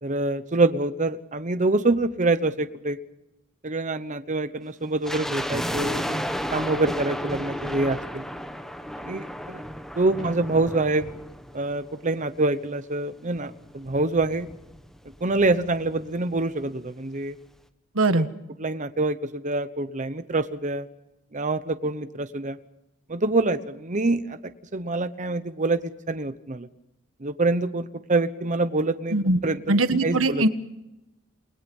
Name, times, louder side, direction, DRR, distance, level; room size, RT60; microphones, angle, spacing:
voice 1, 0.0-3.0 3.6-6.2 6.5-8.2 9.0-9.6 10.0-11.1 11.5-14.5 15.2-17.4 18.1-18.2 18.6-20.9 21.3-22.6 23.1-24.4 24.7-26.7 27.2-29.2 29.4-30.4, right 2 dB, 40° right, 10 dB, 1.1 m, -26 dB
sound 1, 5.0-12.3 12.6-12.7 13.4-15.2 15.4-15.5 15.8-16.1 16.5-16.6, equal, ahead, 1.6 m, -33 dB
voice 2, 17.9-18.3 29.1-29.4 29.7-30.5, right 2 dB, 80° right, 10 dB, 1.6 m, -21 dB
29.5 x 21.0 x 5.5 m, 0.90 s
head